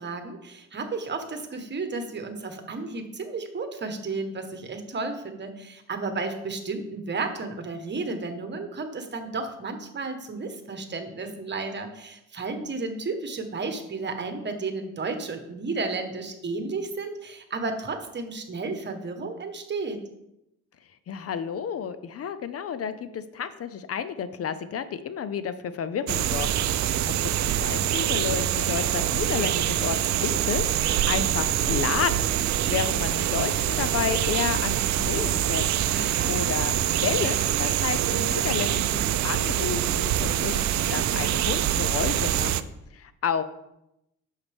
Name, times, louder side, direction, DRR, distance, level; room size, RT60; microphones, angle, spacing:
voice 1, 0.0-20.0 35.9-36.3, right 3 dB, 35° right, 6 dB, 1.3 m, -33 dB
voice 2, 21.1-35.7 36.3-42.6 42.9-43.4, left 7 dB, 50° left, 12 dB, 0.6 m, -31 dB
sound 1, 26.1-42.6, right 11 dB, 65° right, 0.5 m, -25 dB
8.0 x 6.6 x 3.5 m, 0.86 s
cardioid pair, 90°, 30 cm